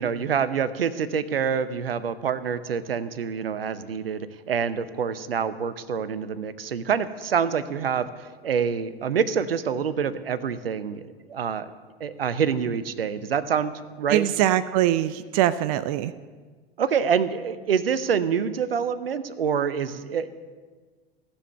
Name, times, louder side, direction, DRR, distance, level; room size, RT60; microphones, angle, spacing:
voice 1, 0.0-11.0 11.3-11.7 12.0-13.7 14.0-14.3 16.8-20.3, right 7 dB, 70° right, 14 dB, 0.7 m, -26 dB
voice 2, 14.1-16.1, right 12 dB, 35° right, 16 dB, 0.4 m, -22 dB
15.0 x 7.2 x 7.9 m, 1.4 s
figure-of-eight pair, 90°, 30 cm